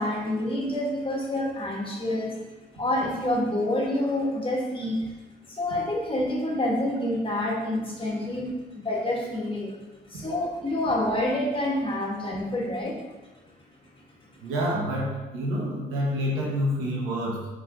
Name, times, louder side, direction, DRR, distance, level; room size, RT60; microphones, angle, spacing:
voice 1, 0.0-2.4 2.7-5.0 5.4-9.8 10.1-13.0, left 1 dB, 25° left, -3 dB, 2.6 m, -27 dB
voice 2, 14.4-17.5, equal, 80° right, -3 dB, 1.9 m, -28 dB
6.3 x 6.1 x 4.2 m, 1.1 s
hypercardioid pair, 50°, 21 cm